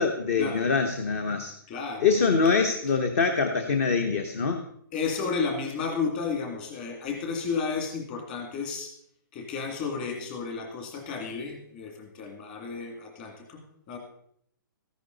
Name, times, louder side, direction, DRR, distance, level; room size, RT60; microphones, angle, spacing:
voice 1, 0.0-1.5 2.0-4.6, left 5 dB, 40° left, 7 dB, 1.0 m, -24 dB
voice 2, 1.7-2.3 4.9-8.9 9.3-14.0, left 5 dB, 25° left, 3 dB, 2.5 m, -32 dB
14.5 x 10.5 x 4.0 m, 0.68 s
hypercardioid pair, 175°, 12 cm